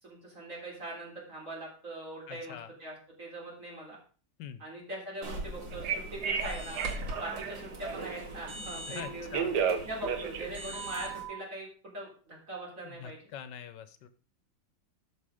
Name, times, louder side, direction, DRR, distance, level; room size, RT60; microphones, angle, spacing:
voice 1, 0.0-4.0 4.6-6.8 7.2-9.3 9.8-13.2, right 1 dB, 45° right, -3 dB, 3.9 m, -42 dB
voice 2, 2.3-2.7 4.4-4.6 8.9-9.6 12.8-14.1, left 9 dB, 75° left, 12 dB, 1.4 m, -44 dB
sound 1, 5.2-11.2, right 1 dB, 85° right, 2.8 m, -41 dB
Telephone, 5.7-8.2 9.0-11.4, right 7 dB, 65° right, 1.6 m, -33 dB
13.0 x 5.2 x 4.9 m, 0.40 s
omnidirectional pair, 2.0 m